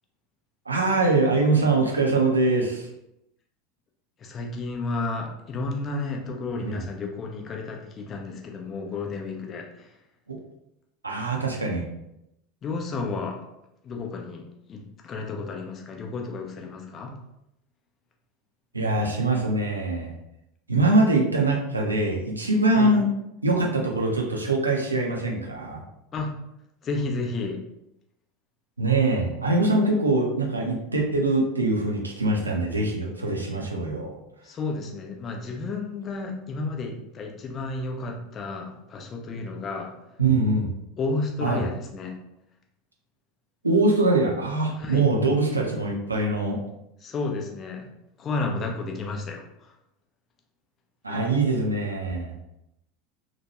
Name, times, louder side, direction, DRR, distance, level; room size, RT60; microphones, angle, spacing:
voice 1, 0.7-2.9 6.7-6.8 10.3-10.4 11.0-11.8 18.7-20.1 20.7-23.1 23.4-25.8 28.8-34.1 40.2-40.7 41.4-41.6 43.6-46.6 51.0-52.3, right 2 dB, 85° right, -1 dB, 0.5 m, -23 dB
voice 2, 4.2-9.9 12.6-13.4 13.8-17.2 22.7-22.9 26.1-26.3 26.8-27.6 34.4-39.9 41.0-42.2 44.8-45.1 47.0-47.9 48.2-49.7, left 3 dB, 30° left, 1 dB, 0.6 m, -32 dB
2.9 x 2.2 x 2.8 m, 0.84 s
figure-of-eight pair, 75°, 0 cm